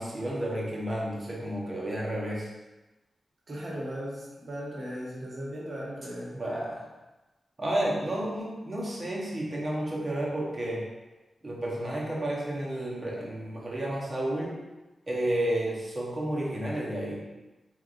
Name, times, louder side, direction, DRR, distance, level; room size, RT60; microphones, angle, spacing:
voice 1, 0.0-2.5 6.4-6.9 7.6-10.9 11.4-14.6 15.1-17.2, right 1 dB, 35° right, -4 dB, 1.2 m, -31 dB
voice 2, 3.5-6.4, equal, 55° right, -5 dB, 1.4 m, -37 dB
4.3 x 3.4 x 2.6 m, 1.1 s
cardioid pair, 70°, 0 cm